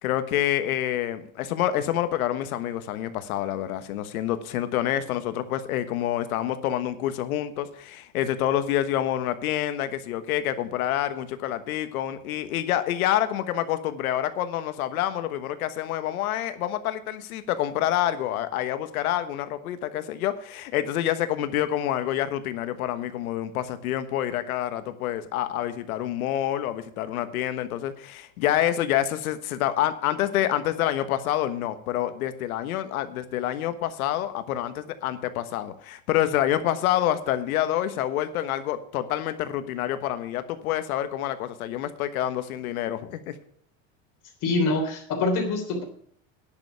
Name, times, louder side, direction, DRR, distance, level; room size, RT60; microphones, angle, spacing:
voice 1, 0.0-43.4, left 12 dB, 90° left, 11 dB, 1.3 m, -27 dB
voice 2, 44.4-45.8, left 2 dB, 45° left, 3 dB, 3.5 m, -25 dB
10.5 x 6.7 x 8.5 m, 0.62 s
supercardioid pair, 125°, 42 cm